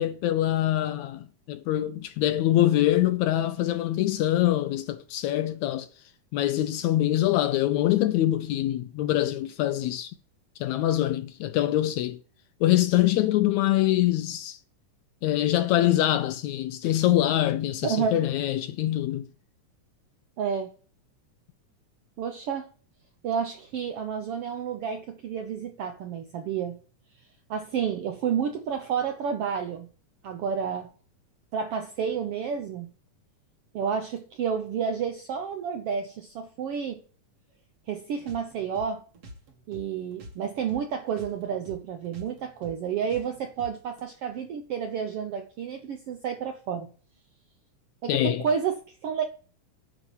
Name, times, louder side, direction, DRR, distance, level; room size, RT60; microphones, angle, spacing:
voice 1, 0.0-5.9 6.3-10.1 10.6-12.2 12.6-14.6 15.2-19.3 48.1-48.4, left 13 dB, 80° left, 1.7 m, -24 dB
voice 2, 17.8-18.3 20.4-20.7 22.2-22.7 23.2-26.8 27.5-29.9 30.2-30.9 31.5-32.9 33.7-37.0 37.9-39.0 39.7-46.9 48.0-49.2, right 7 dB, 75° right, 1.3 m, -30 dB
sound 1, 38.2-40.8 41.1-44.0, equal, 50° right, 2.6 m, -46 dB
10.0 x 5.1 x 7.1 m
omnidirectional pair, 3.7 m